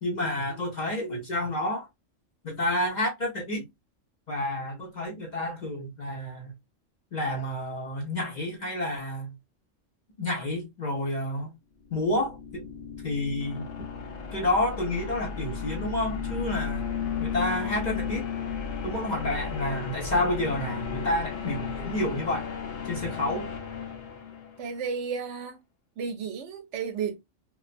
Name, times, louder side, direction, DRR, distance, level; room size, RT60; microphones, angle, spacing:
voice 1, 0.0-1.9 2.4-3.6 4.3-6.5 7.1-9.4 10.2-11.6 11.9-12.7 13.0-13.7 14.3-16.9 17.2-18.3 18.8-22.5 22.8-23.5, left 1 dB, 40° left, 0.7 m, -29 dB
sound 1, 11.8-24.8, left 6 dB, 80° left, 1.0 m, -34 dB
voice 2, 24.6-25.6 26.0-27.2, right 6 dB, 70° right, 0.8 m, -32 dB
2.4 x 2.2 x 2.4 m
omnidirectional pair, 1.3 m